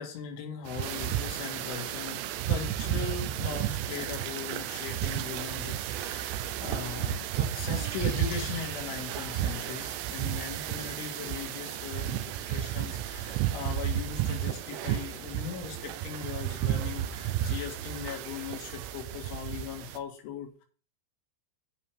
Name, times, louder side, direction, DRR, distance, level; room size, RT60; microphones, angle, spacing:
voice 1, 0.0-20.6, left 8 dB, 90° left, 1 dB, 4.2 m, -39 dB
sound 1, 0.7-20.0, right 11 dB, 90° right, 3.1 m, -33 dB
sound 2, 3.1-18.9, right 4 dB, 45° right, 2.7 m, -55 dB
10.5 x 8.9 x 3.5 m, 0.37 s
omnidirectional pair, 5.4 m